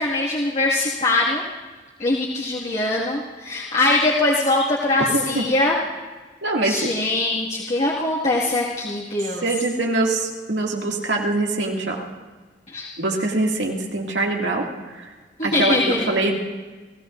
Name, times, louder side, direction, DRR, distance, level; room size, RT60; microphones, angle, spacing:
voice 1, 0.0-1.4 2.0-5.8 6.6-9.4 12.7-12.9 15.4-16.2, left 2 dB, 40° left, -6 dB, 2.0 m, -22 dB
voice 2, 4.9-5.4 6.4-6.9 9.4-12.0 13.0-15.1 15.4-16.4, right 2 dB, 90° right, -1 dB, 2.3 m, -23 dB
29.0 x 16.0 x 2.6 m, 1.3 s
head